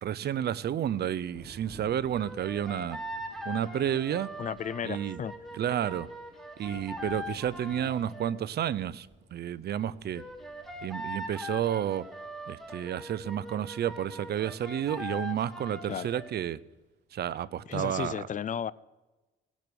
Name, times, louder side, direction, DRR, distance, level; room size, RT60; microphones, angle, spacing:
voice 1, 0.0-3.0 3.5-4.3 4.8-5.2 5.5-6.1 6.6-10.2 10.8-12.1 12.5-16.6 17.1-18.3, right 10 dB, 55° right, 0.5 m, -31 dB
Thunder / Rain, 0.9-16.6, right 2 dB, 35° right, 3.0 m, -55 dB
sound 1, 2.1-8.3 10.1-16.3, left 1 dB, ahead, 1.9 m, -41 dB
voice 2, 4.4-5.3 15.9-16.1 17.7-18.7, left 8 dB, 40° left, 0.4 m, -34 dB
17.5 x 6.1 x 6.8 m
cardioid pair, 90°, 20 cm